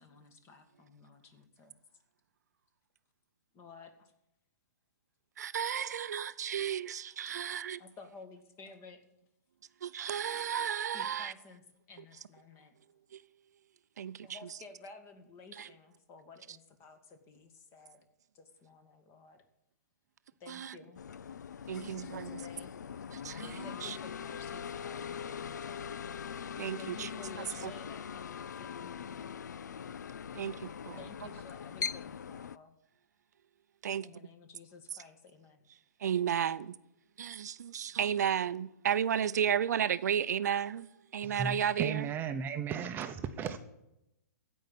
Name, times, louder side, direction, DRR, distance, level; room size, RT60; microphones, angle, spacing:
voice 1, 0.0-1.7 3.5-4.1 7.2-7.4 7.8-9.0 10.9-12.8 14.2-18.1 18.3-19.4 20.4-21.0 21.7-22.7 23.6-25.9 26.8-29.4 31.0-32.8 34.0-35.6, left 4 dB, 30° left, 2.0 m, -53 dB
voice 2, 5.4-7.8 9.8-11.3 14.0-14.3 15.6-15.7 20.5-20.7 21.7-22.3 23.2-24.0 26.6-27.1 30.3-31.0 33.8-34.1 36.0-36.7 37.2-40.9 41.1-42.1, right 9 dB, 70° right, 0.6 m, -33 dB
sound 1, 21.0-32.6, left 7 dB, 85° left, 0.4 m, -42 dB
voice 3, 41.2-43.6, right 7 dB, 20° right, 0.8 m, -35 dB
15.5 x 5.5 x 8.7 m
hypercardioid pair, 135°, 9 cm